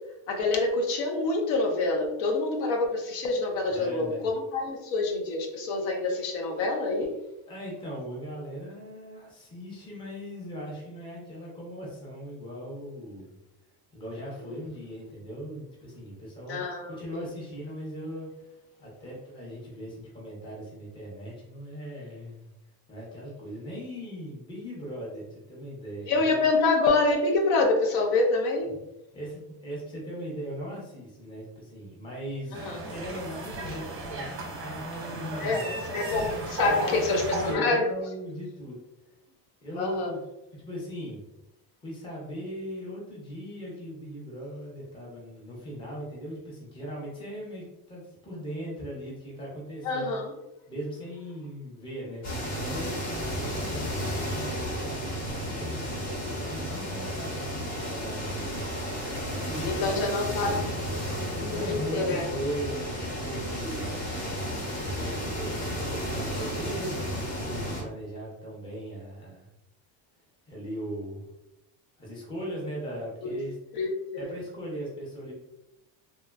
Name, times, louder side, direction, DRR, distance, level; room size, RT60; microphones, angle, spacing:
voice 1, 0.3-7.1 14.4-14.6 16.5-17.2 26.1-28.7 32.5-32.8 35.4-35.6 35.9-38.0 39.8-40.1 49.8-50.3 59.6-60.6 61.4-62.2 73.2-73.4 73.7-74.3, left 3 dB, 75° left, 2 dB, 0.7 m, -26 dB
voice 2, 3.7-4.2 7.5-13.3 13.9-18.5 18.8-22.5 22.9-26.4 29.1-35.8 36.6-38.8 39.6-40.2 40.5-41.2 41.8-50.2 50.7-58.7 59.3-60.3 61.3-64.0 64.7-69.5 70.5-71.3 72.0-73.6 74.2-75.4, equal, 10° left, -4 dB, 0.5 m, -39 dB
sound 1, 32.5-37.5, right 2 dB, 25° right, 0.6 m, -35 dB
sound 2, 52.2-67.8, equal, 35° left, 1.1 m, -33 dB
2.9 x 2.2 x 2.2 m, 0.94 s
cardioid pair, 150°, 48 cm